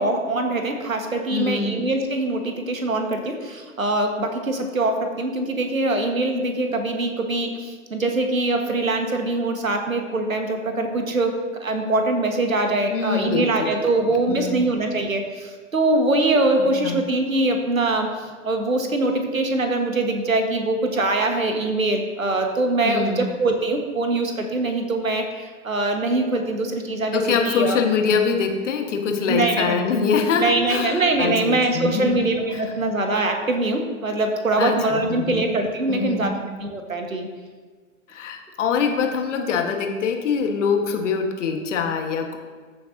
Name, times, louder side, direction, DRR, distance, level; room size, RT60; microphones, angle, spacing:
voice 1, 0.0-11.3 11.6-27.8 29.3-29.8 30.4-36.3 36.6-37.3, right 2 dB, 90° right, 4 dB, 1.4 m, -23 dB
voice 2, 1.3-1.7 12.9-13.7 14.0-14.6 16.6-17.0 22.8-23.3 27.1-32.2 32.5-32.8 34.6-35.5 35.9-36.4 38.1-42.4, left 5 dB, 65° left, 4 dB, 1.4 m, -24 dB
14.0 x 6.8 x 2.6 m, 1.5 s
figure-of-eight pair, 100°, 40 cm